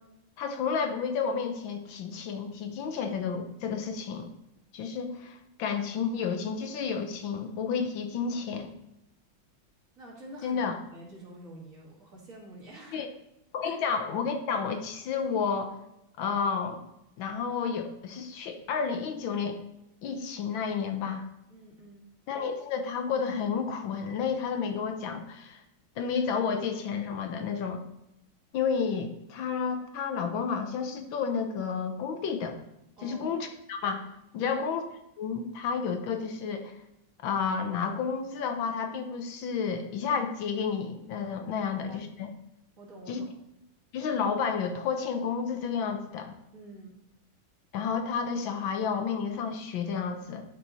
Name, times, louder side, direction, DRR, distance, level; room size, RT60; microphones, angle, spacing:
voice 1, 0.4-4.3 4.7-8.7 10.4-10.8 12.9-13.1 13.5-15.7 16.2-16.8 17.2-19.6 20.0-21.2 22.3-25.6 26.0-27.8 28.5-32.6 33.0-34.0 34.3-34.8 35.2-36.8 37.2-42.3 43.1-43.2 43.9-46.3 47.7-50.4, left 6 dB, 75° left, 6 dB, 1.6 m, -31 dB
voice 2, 10.0-13.1 13.6-13.8 21.0-21.2 21.5-22.1 33.0-33.4 34.4-34.6 41.6-42.1 42.8-43.3 46.5-47.0, right 1 dB, 40° right, -5 dB, 2.4 m, -48 dB
11.5 x 4.5 x 4.1 m, 0.83 s
omnidirectional pair, 2.2 m